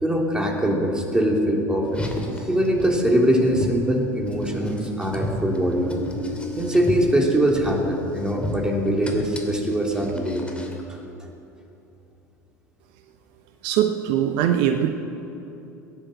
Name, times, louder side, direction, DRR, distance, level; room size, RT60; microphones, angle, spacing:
voice 1, 0.0-2.0 2.3-5.9 6.5-10.4 10.9-11.0, equal, 10° right, 0 dB, 3.2 m, -22 dB
Car, 1.9-10.8, left 1 dB, 10° left, 2.8 m, -33 dB
voice 2, 13.6-14.9, right 10 dB, 60° right, 7 dB, 0.9 m, -21 dB
17.5 x 10.0 x 7.7 m, 2.9 s
hypercardioid pair, 70°, 9 cm